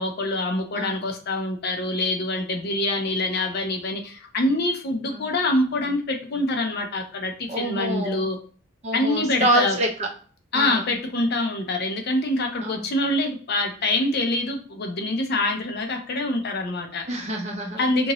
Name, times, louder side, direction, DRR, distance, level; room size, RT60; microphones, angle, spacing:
voice 1, 0.0-8.4 8.9-9.8 10.5-17.0 17.8-18.1, left 2 dB, 50° left, 4 dB, 0.5 m, -25 dB
voice 2, 0.7-1.1 5.1-5.3 7.5-8.3 8.8-10.1 10.5-10.9 12.6-12.8 17.1-18.1, right 1 dB, 30° right, 1 dB, 0.6 m, -27 dB
2.7 x 2.5 x 2.9 m, 0.43 s
head